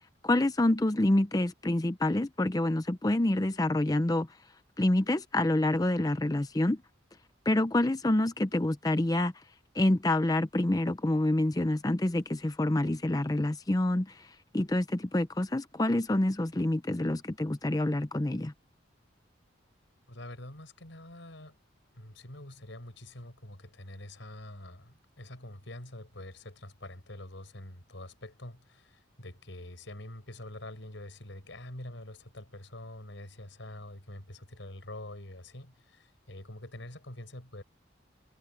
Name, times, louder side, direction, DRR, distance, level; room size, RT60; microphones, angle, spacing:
voice 1, 0.2-4.3 4.8-6.8 7.5-9.3 9.7-18.5, left 1 dB, 20° left, 0.5 m, -27 dB
voice 2, 20.1-21.6 21.9-37.6, left 1 dB, 80° left, 4.7 m, -45 dB
head